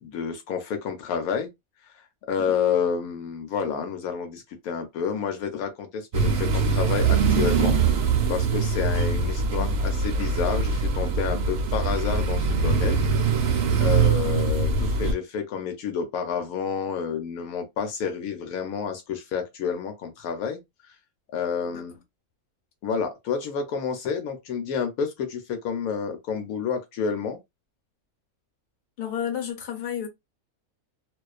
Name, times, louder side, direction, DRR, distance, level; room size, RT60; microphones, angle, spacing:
voice 1, 0.0-1.5 1.8-13.0 13.8-21.0 21.3-22.0 22.8-27.4, left 6 dB, 80° left, 1.0 m, -29 dB
sound 1, 6.1-15.1, right 4 dB, 65° right, 0.7 m, -23 dB
voice 2, 29.0-30.1, left 9 dB, 45° left, 0.9 m, -31 dB
2.4 x 2.2 x 2.3 m
omnidirectional pair, 1.5 m